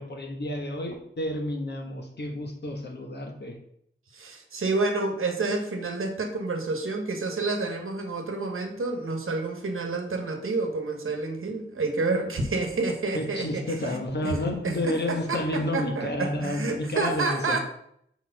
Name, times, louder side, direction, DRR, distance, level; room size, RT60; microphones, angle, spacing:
voice 1, 0.0-3.6 13.1-17.6, left 1 dB, 55° left, 2 dB, 1.2 m, -30 dB
voice 2, 4.1-14.3 14.6-17.6, right 3 dB, 80° right, 5 dB, 1.1 m, -29 dB
4.6 x 4.3 x 5.6 m, 0.71 s
wide cardioid pair, 95°, 21 cm